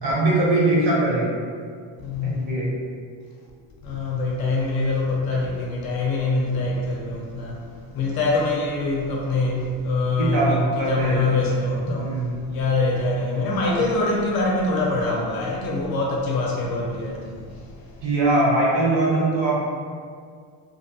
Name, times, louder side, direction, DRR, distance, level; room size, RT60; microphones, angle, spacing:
voice 1, 0.0-1.4 2.2-2.7 10.2-11.4 11.8-12.4 18.0-19.6, right 2 dB, 60° right, -5 dB, 0.9 m, -21 dB
voice 2, 2.0-2.5 3.8-7.6 7.9-18.0, left 3 dB, 50° left, -2 dB, 0.4 m, -24 dB
2.6 x 2.0 x 2.6 m, 2.1 s
cardioid pair, 135°, 50 cm